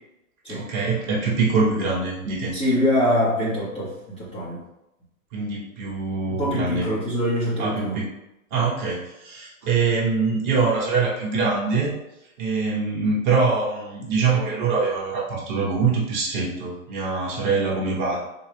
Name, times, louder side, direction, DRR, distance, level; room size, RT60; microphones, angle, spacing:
voice 1, 0.5-2.5 5.3-6.9 7.6-8.1 8.5-11.9 12.4-18.2, right 4 dB, 35° right, -4 dB, 1.0 m, -24 dB
voice 2, 2.5-4.6 6.3-8.0, equal, 15° left, -9 dB, 0.8 m, -24 dB
3.7 x 2.3 x 3.4 m, 0.90 s
hypercardioid pair, 160°, 42 cm